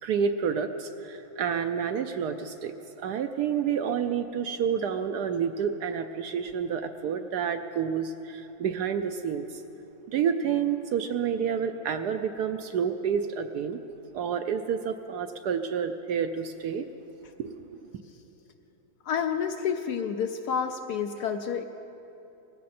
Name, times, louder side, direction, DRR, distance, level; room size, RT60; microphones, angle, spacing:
voice 1, 0.0-9.6 10.1-13.8 14.1-16.8 17.4-17.7, right 7 dB, 70° right, 8 dB, 1.0 m, -29 dB
voice 2, 19.0-21.6, left 7 dB, 70° left, 7 dB, 1.0 m, -29 dB
19.5 x 16.0 x 4.3 m, 3.0 s
omnidirectional pair, 2.1 m